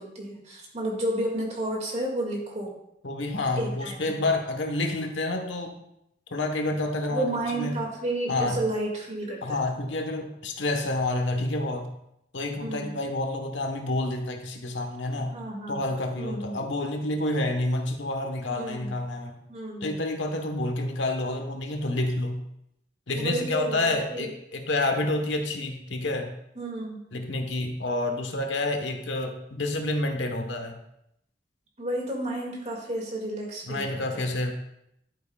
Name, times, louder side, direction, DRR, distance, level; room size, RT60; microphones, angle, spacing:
voice 1, 0.0-2.7 3.6-4.2 7.1-9.6 12.6-13.0 15.3-15.9 16.2-16.6 18.6-19.0 19.5-20.0 23.2-24.3 26.6-27.0 31.8-34.3, right 1 dB, 35° right, -1 dB, 2.2 m, -32 dB
voice 2, 3.0-5.8 6.3-7.8 8.3-8.6 9.4-11.9 12.3-15.4 15.7-19.4 19.8-22.4 23.1-26.3 27.1-30.8 33.7-34.5, left 2 dB, 85° left, 4 dB, 1.2 m, -29 dB
11.0 x 9.2 x 2.4 m, 0.79 s
head